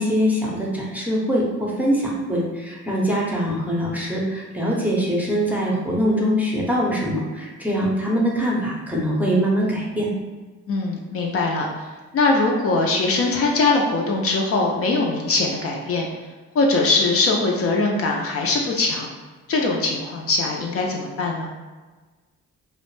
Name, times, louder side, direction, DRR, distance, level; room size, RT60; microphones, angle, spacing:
voice 1, 0.0-10.1, equal, 5° right, -4 dB, 0.6 m, -23 dB
voice 2, 10.7-11.9 12.1-16.1 16.5-19.1 19.5-21.5, left 3 dB, 50° left, 0 dB, 0.4 m, -21 dB
2.4 x 2.1 x 3.1 m, 1.3 s
cardioid pair, 90°, 30 cm